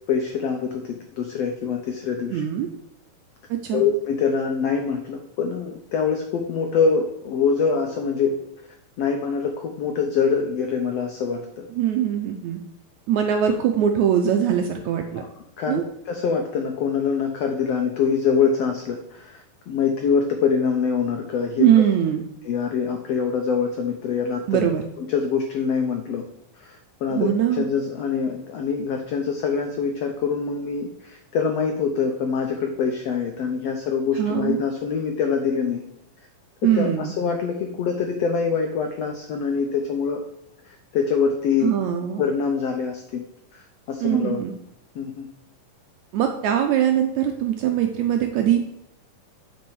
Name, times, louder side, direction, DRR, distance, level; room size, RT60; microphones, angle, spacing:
voice 1, 0.1-2.4 3.7-8.4 9.0-11.7 15.2-15.3 15.6-21.7 22.4-24.6 25.1-26.2 26.6-35.8 36.6-40.2 40.7-41.7 42.2-43.3 43.5-44.4 44.9-45.3, left 6 dB, 85° left, 4 dB, 1.4 m, -24 dB
voice 2, 2.3-2.7 3.6-3.8 11.7-12.6 13.1-15.2 15.7-15.8 21.6-22.2 24.5-24.8 27.1-27.7 34.2-34.6 36.6-37.1 41.6-42.2 44.0-44.5 46.1-48.6, right 9 dB, 80° right, 4 dB, 1.7 m, -21 dB
9.6 x 5.3 x 4.7 m, 0.77 s
omnidirectional pair, 3.9 m